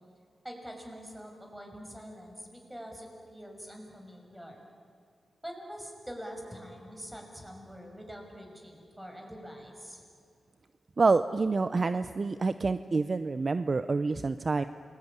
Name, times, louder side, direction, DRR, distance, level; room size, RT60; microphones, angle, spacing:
voice 1, 0.4-4.6 5.4-10.0, equal, 10° right, 2 dB, 6.2 m, -45 dB
voice 2, 11.0-14.6, right 3 dB, 40° right, 12 dB, 0.6 m, -27 dB
28.0 x 21.5 x 9.8 m, 2.3 s
cardioid pair, 85°, 0 cm